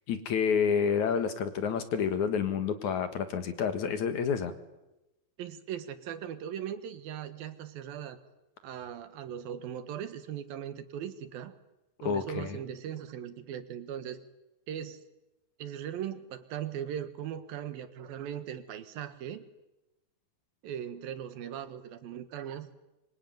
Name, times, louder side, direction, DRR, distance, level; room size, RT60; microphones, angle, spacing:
voice 1, 0.1-4.5 12.0-12.6, left 7 dB, 60° left, 9 dB, 2.7 m, -29 dB
voice 2, 5.4-8.2 8.6-11.5 12.0-14.2 14.7-15.0 15.6-19.4 20.6-22.7, right 9 dB, 80° right, 11 dB, 3.2 m, -39 dB
25.0 x 24.5 x 9.3 m, 0.98 s
omnidirectional pair, 4.3 m